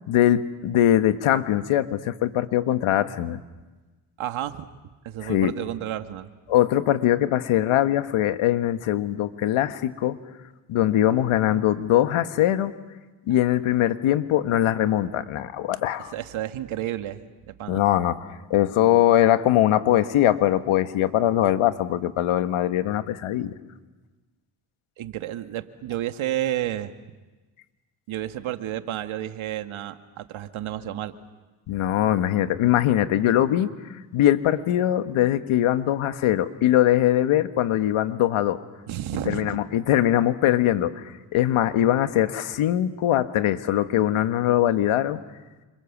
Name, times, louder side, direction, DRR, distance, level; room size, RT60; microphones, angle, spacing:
voice 1, 0.1-3.4 5.2-5.5 6.5-10.2 10.7-12.7 13.3-16.1 17.7-23.5 31.7-33.7 34.1-38.6 39.3-45.2, left 12 dB, 80° left, 10 dB, 1.5 m, -22 dB
voice 2, 4.2-4.7 5.0-6.3 16.1-17.8 25.0-26.9 28.1-31.1 38.9-39.6, right 12 dB, 70° right, 8 dB, 1.8 m, -31 dB
28.5 x 26.5 x 7.3 m, 1.2 s
cardioid pair, 80°, 49 cm